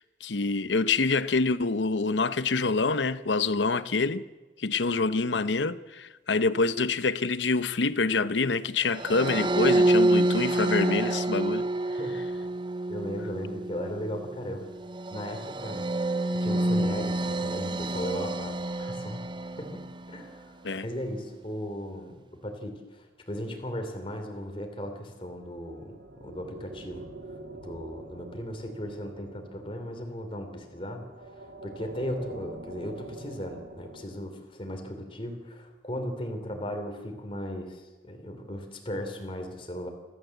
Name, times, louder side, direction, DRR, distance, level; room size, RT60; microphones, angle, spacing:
voice 1, 0.0-4.2 4.6-11.7 20.6-20.9, left 3 dB, 80° left, 0.9 m, -26 dB
sound 1, 8.9-20.3, right 1 dB, 25° right, 0.7 m, -28 dB
voice 2, 12.9-14.7 15.1-20.6 20.8-22.2 22.4-27.1 27.6-31.3 31.6-39.9, equal, 30° left, 3.5 m, -37 dB
sound 2, 25.2-34.0, right 1 dB, 85° right, 2.8 m, -46 dB
28.5 x 13.5 x 8.0 m
head